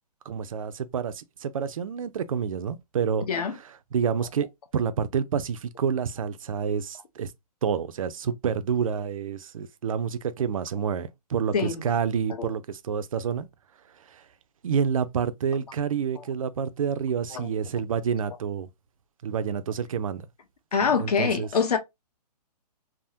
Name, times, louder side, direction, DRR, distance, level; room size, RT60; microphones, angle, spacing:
voice 1, 0.3-3.3 3.9-4.5 4.7-7.3 7.6-13.5 14.1-14.2 14.6-18.7 19.2-20.3 21.0-21.5, right 7 dB, 55° right, 0.4 m, -28 dB
voice 2, 20.7-21.8, left 6 dB, 65° left, 0.8 m, -25 dB
3.4 x 2.0 x 2.6 m
hypercardioid pair, 170°, 21 cm